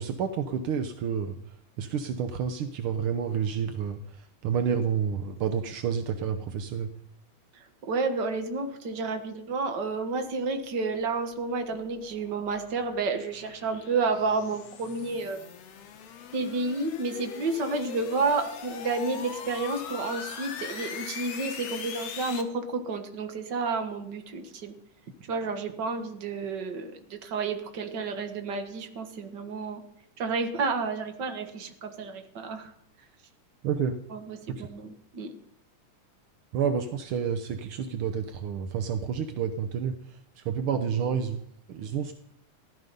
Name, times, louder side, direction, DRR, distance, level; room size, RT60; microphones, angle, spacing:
voice 1, 0.0-1.4 1.8-4.0 4.4-6.9 33.6-34.0 34.5-34.7 36.5-40.0 40.4-41.4 41.7-42.1, right 7 dB, 75° right, 8 dB, 1.2 m, -29 dB
voice 2, 7.8-15.4 16.3-24.7 25.3-29.8 30.2-32.7 34.1-35.3 40.5-40.8, right 3 dB, 45° right, 6 dB, 1.6 m, -31 dB
sound 1, 11.1-22.4, left 7 dB, 60° left, 2.1 m, -41 dB
16.0 x 12.5 x 5.4 m, 0.71 s
omnidirectional pair, 3.5 m